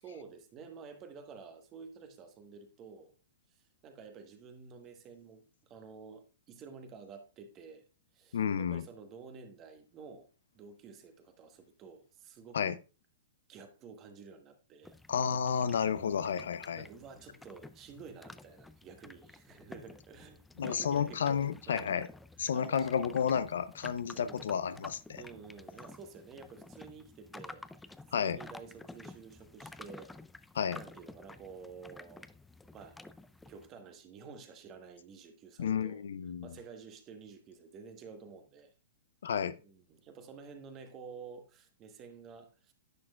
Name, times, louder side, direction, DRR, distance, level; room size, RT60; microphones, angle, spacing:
voice 1, 0.0-3.1 3.5-7.8 8.1-10.3 10.5-12.7 13.5-15.0 15.9-16.3 16.8-22.0 22.5-23.1 24.1-24.6 25.2-30.1 30.8-32.3 32.7-33.0 33.5-36.1 36.4-38.7 39.6-42.7, right 5 dB, 30° right, 1.2 m, -51 dB
voice 2, 8.3-8.9 12.5-12.8 15.1-16.8 20.6-22.1 22.4-25.2 28.1-28.4 30.5-30.8 35.6-36.5 39.2-39.6, left 7 dB, 80° left, 0.6 m, -31 dB
sound 1, 14.8-33.7, left 2 dB, 5° left, 0.4 m, -51 dB
10.5 x 6.4 x 2.4 m
hypercardioid pair, 135°, 0 cm